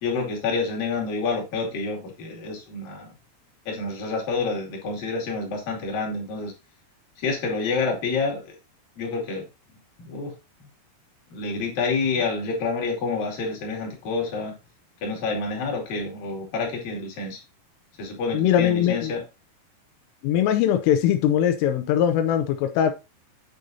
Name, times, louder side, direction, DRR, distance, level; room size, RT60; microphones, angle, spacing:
voice 1, 0.0-3.1 3.7-6.5 7.2-8.6 9.0-9.5 10.0-10.3 11.3-14.6 15.0-17.4 18.0-19.2, left 4 dB, 50° left, 3.7 m, -28 dB
voice 2, 18.3-19.1 20.2-22.9, left 10 dB, 85° left, 3.2 m, -21 dB
9.0 x 6.5 x 2.7 m
omnidirectional pair, 5.7 m